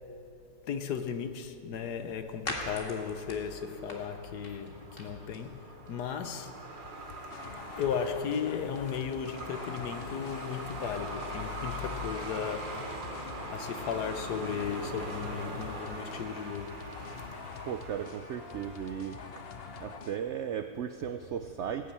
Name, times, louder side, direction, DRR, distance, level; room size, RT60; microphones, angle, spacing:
voice 1, 0.7-6.6 7.7-17.1, left 7 dB, 75° left, 1.4 m, -36 dB
sound 1, 1.2-9.9, left 1 dB, 35° left, 1.9 m, -46 dB
Truck, 2.6-20.0, right 2 dB, 35° right, 1.2 m, -43 dB
sound 2, 7.3-20.2, left 6 dB, 60° left, 0.6 m, -45 dB
voice 2, 17.6-19.5 19.8-21.9, right 8 dB, 80° right, 0.6 m, -36 dB
18.5 x 7.2 x 8.7 m
omnidirectional pair, 1.8 m